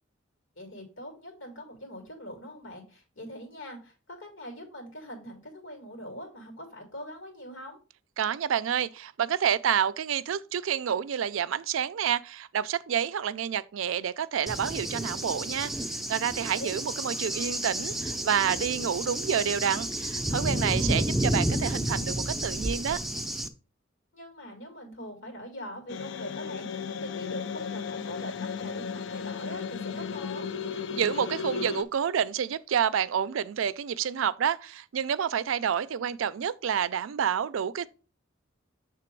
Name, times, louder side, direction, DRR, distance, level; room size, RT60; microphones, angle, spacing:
voice 1, 0.6-7.8 16.5-16.8 24.1-30.5, equal, 85° left, 2.3 m, -42 dB
voice 2, 8.2-23.0 31.0-37.9, right 8 dB, 90° right, 0.4 m, -29 dB
Cricket / Thunder, 14.5-23.5, right 1 dB, ahead, 0.4 m, -31 dB
sound 1, 25.9-31.8, left 6 dB, 65° left, 0.4 m, -35 dB
6.8 x 3.5 x 4.5 m
head